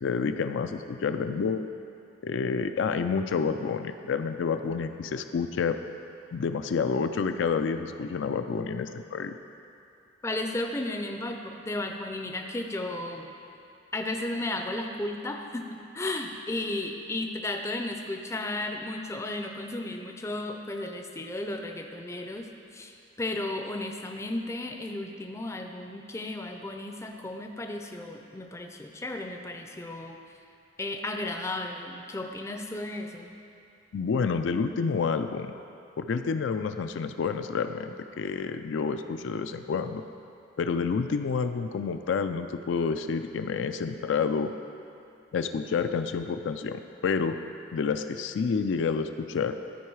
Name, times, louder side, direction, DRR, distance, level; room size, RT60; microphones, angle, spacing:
voice 1, 0.0-1.7 2.2-5.8 6.3-9.4 33.9-35.5 36.0-40.0 40.6-44.5 45.3-47.4 47.7-49.6, left 5 dB, 75° left, 8 dB, 0.4 m, -29 dB
voice 2, 10.2-13.3 13.9-30.2 30.8-33.3, left 2 dB, 15° left, 4 dB, 0.4 m, -34 dB
13.0 x 4.7 x 4.6 m, 2.6 s
head